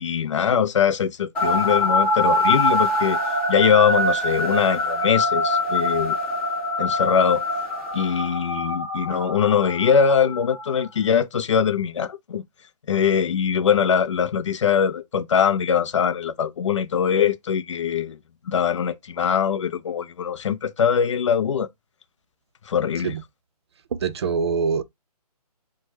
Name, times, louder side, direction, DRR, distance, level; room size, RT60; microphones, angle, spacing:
voice 1, 0.0-3.2 3.5-6.2 6.8-7.4 7.9-12.4 12.9-18.2 18.5-21.7 22.7-23.1, left 7 dB, 50° left, 0.4 m, -22 dB
sound 1, 1.3-10.8, left 1 dB, 5° left, 1.1 m, -24 dB
voice 2, 23.9-24.8, right 5 dB, 45° right, 0.4 m, -24 dB
3.0 x 2.2 x 3.1 m
figure-of-eight pair, 150°, 20 cm